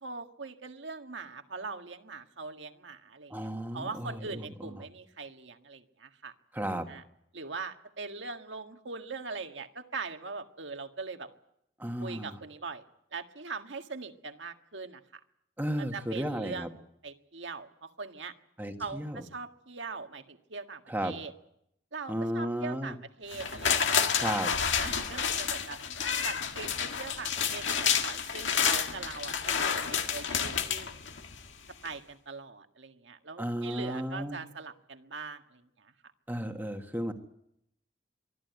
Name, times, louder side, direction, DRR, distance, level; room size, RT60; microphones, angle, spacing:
voice 1, 0.0-3.5 3.7-6.3 6.9-7.0 7.3-11.3 12.0-12.8 13.1-15.2 15.8-16.7 17.0-18.3 18.8-21.3 21.9-24.5 24.8-25.8 26.2-30.9 31.8-35.9, right 4 dB, 80° right, 6 dB, 1.7 m, -41 dB
voice 2, 3.3-4.4 6.5-6.9 11.8-12.4 15.6-16.7 18.6-19.2 20.9-21.1 22.1-22.9 24.2-24.5 33.4-34.4 36.3-37.1, equal, 10° right, 4 dB, 1.5 m, -33 dB
sound 1, 23.3-31.5 31.9-32.0, left 7 dB, 90° left, 1.9 m, -29 dB
24.5 x 14.0 x 9.4 m, 0.77 s
head